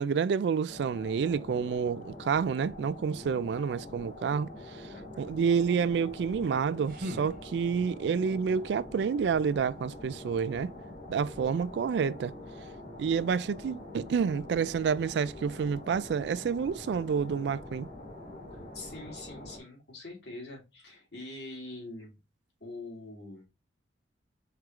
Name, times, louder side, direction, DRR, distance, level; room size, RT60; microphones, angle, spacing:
voice 1, 0.0-4.9 5.2-10.7 11.1-12.3 13.0-17.9, right 6 dB, 70° right, 0.3 m, -29 dB
sound 1, 0.7-19.6, left 1 dB, 45° left, 1.8 m, -45 dB
voice 2, 4.9-5.4 18.5-22.1 22.6-23.5, left 2 dB, 65° left, 2.5 m, -44 dB
sound 2, 6.4-8.0, equal, 50° right, 0.8 m, -42 dB
4.5 x 3.7 x 3.0 m
head